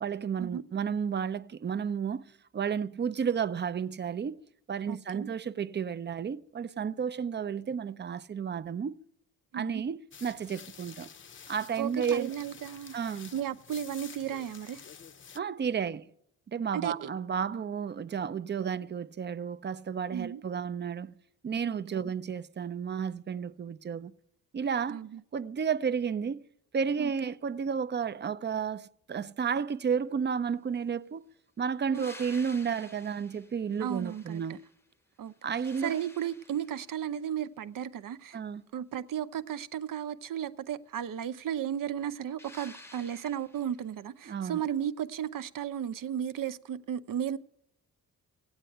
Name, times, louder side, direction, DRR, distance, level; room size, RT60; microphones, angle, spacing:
voice 1, 0.0-4.4 4.7-9.0 9.5-11.1 11.5-12.3 12.9-13.3 15.3-16.1 16.5-21.2 21.4-24.1 24.5-25.0 25.3-26.4 26.7-31.3 31.6-34.6 35.4-36.0 38.3-38.6 44.3-44.6, right 7 dB, 30° right, 0.5 m, -32 dB
voice 2, 4.9-5.3 9.5-9.8 11.8-13.0 13.3-14.8 16.7-17.1 20.1-20.4 21.7-22.1 24.9-25.2 27.0-27.3 31.9-32.1 33.8-34.6 35.2-35.3 35.8-38.4 38.7-47.4, right 9 dB, 65° right, 0.7 m, -35 dB
sound 1, 10.1-15.4, left 7 dB, 35° left, 0.6 m, -49 dB
sound 2, 31.9-34.9 35.3-37.0 42.4-43.8 46.4-46.5, left 1 dB, 5° left, 0.8 m, -52 dB
15.5 x 8.9 x 9.1 m
cardioid pair, 90°, 35 cm